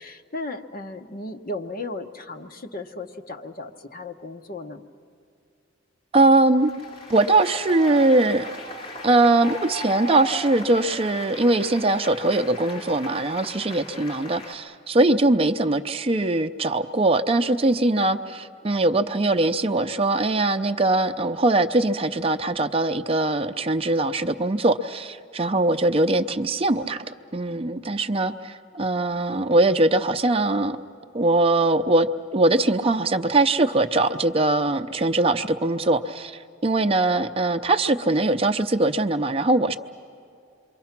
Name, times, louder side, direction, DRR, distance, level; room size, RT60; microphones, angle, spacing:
voice 1, 0.0-4.8 13.7-14.0, left 2 dB, 50° left, 5 dB, 1.1 m, -36 dB
voice 2, 6.1-6.7 7.1-8.5 9.0-27.0 27.3-30.8 31.1-32.1 32.3-39.8, right 2 dB, 30° right, 9 dB, 0.6 m, -21 dB
Applause, 6.6-14.5, equal, 30° left, 2.4 m, -38 dB
28.0 x 24.0 x 5.9 m, 2.5 s
head